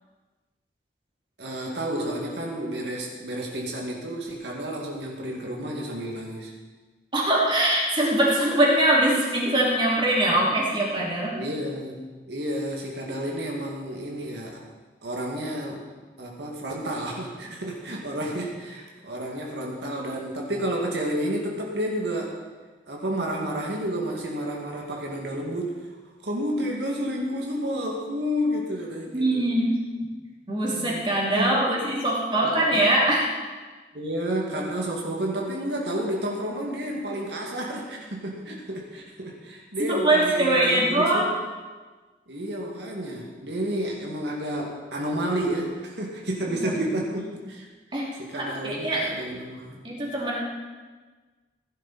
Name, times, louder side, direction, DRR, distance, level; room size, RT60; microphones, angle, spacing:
voice 1, 1.4-6.5 11.3-14.6 15.0-15.8 16.2-22.4 22.9-25.7 26.2-29.4 30.7-31.1 31.4-31.8 32.4-32.8 33.9-41.3 42.3-47.7 48.2-49.8, right 1 dB, 80° right, -2 dB, 2.1 m, -31 dB
voice 2, 7.1-11.4 29.1-29.8 30.5-33.3 39.9-41.3 46.5-46.8 47.9-48.1 48.4-49.0 49.8-50.4, right 1 dB, 25° right, -4 dB, 2.9 m, -22 dB
16.0 x 10.5 x 4.2 m, 1.4 s
head